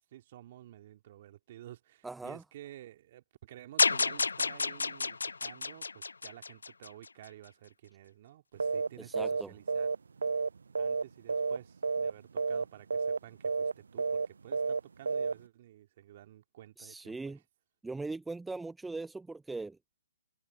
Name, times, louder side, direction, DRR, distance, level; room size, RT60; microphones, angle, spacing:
voice 1, 0.1-9.9 10.8-17.4, right 13 dB, 40° right, 2.6 m, -52 dB
voice 2, 2.0-2.4 9.0-9.5 16.8-17.4 17.8-19.8, right 3 dB, 5° right, 0.7 m, -40 dB
sound 1, 3.8-7.1, left 4 dB, 80° left, 0.5 m, -30 dB
sound 2, 8.6-8.9 9.1-9.4 9.7-11.0 11.3-11.6 11.8-12.1 12.4-12.6 12.9-13.2 13.4-13.7 14.0-14.3 14.5-14.8 15.1-15.3, right 4 dB, 70° right, 0.7 m, -30 dB
figure-of-eight pair, 140°, 0 cm